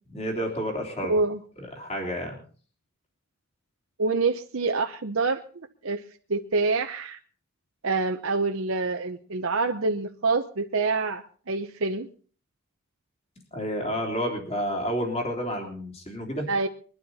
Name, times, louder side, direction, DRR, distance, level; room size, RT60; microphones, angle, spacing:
voice 1, 0.1-1.2 1.6-2.4 13.5-16.5, equal, 30° left, 1 dB, 3.2 m, -30 dB
voice 2, 1.1-1.4 4.0-6.0 6.3-7.2 7.8-12.1 16.5-16.7, right 3 dB, 65° right, 5 dB, 0.8 m, -26 dB
21.5 x 12.0 x 4.2 m, 0.42 s
head